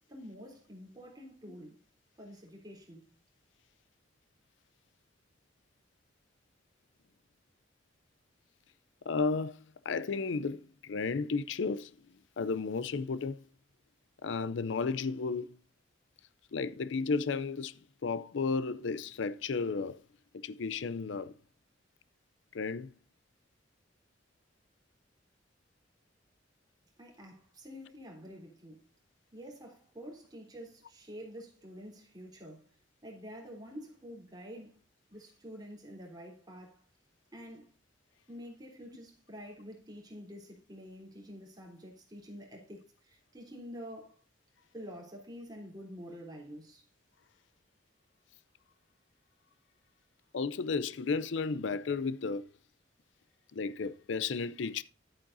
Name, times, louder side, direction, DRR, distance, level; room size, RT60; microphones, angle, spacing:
voice 1, 0.1-1.8 2.2-3.0 27.0-28.8 29.3-32.7 33.0-34.8 35.1-36.8 37.3-37.8 38.3-44.2 44.7-46.9, equal, 20° right, 3.5 m, -48 dB
voice 2, 9.1-9.6 9.9-11.9 12.4-13.4 14.2-15.6 16.5-20.0 20.3-21.3 22.5-22.9 50.3-52.5 53.5-54.8, left 4 dB, 75° left, 0.5 m, -33 dB
11.5 x 8.6 x 2.6 m
head